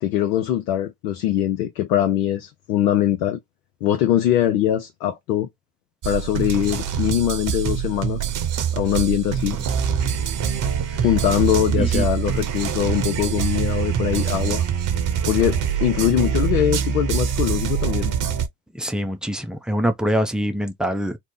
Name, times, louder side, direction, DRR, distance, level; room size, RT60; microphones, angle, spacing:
voice 1, 0.0-3.4 3.8-5.5 6.0-8.3 8.7-9.6 10.9-14.6 15.3-18.1, left 11 dB, 75° left, 0.8 m, -22 dB
sound 1, 6.0-18.5, right 8 dB, 40° right, 1.0 m, -24 dB
voice 2, 18.8-21.2, equal, ahead, 0.5 m, -24 dB
3.1 x 2.1 x 3.6 m
hypercardioid pair, 75°, 48 cm